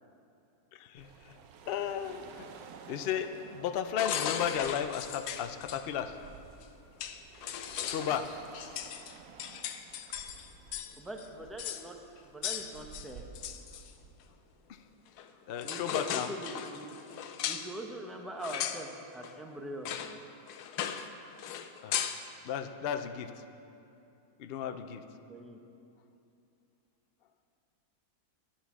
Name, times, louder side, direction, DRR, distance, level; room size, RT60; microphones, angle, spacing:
voice 1, 0.7-1.4 1.6-2.5 2.9-6.3 7.9-8.3 14.7-14.8 15.5-16.3 21.8-22.0 22.4-23.3 24.4-25.0, left 8 dB, 70° left, 9 dB, 0.5 m, -34 dB
sound 1, 0.9-14.9, right 6 dB, 75° right, 1.2 m, -53 dB
sound 2, 4.0-5.8 6.6-6.7 7.0-10.9 11.2-11.3 11.6-11.9 12.4-13.9 15.2-15.3 15.6-17.7 18.4-18.9 19.2-19.4 19.9-20.2 20.5-21.1 21.4-22.2, left 9 dB, 90° left, 1.2 m, -37 dB
voice 2, 11.0-12.0 12.2-13.2 15.6-17.0 17.4-20.2 25.3-25.6, right 1 dB, ahead, 2 dB, 0.4 m, -43 dB
10.0 x 10.0 x 6.2 m, 2.7 s
omnidirectional pair, 1.6 m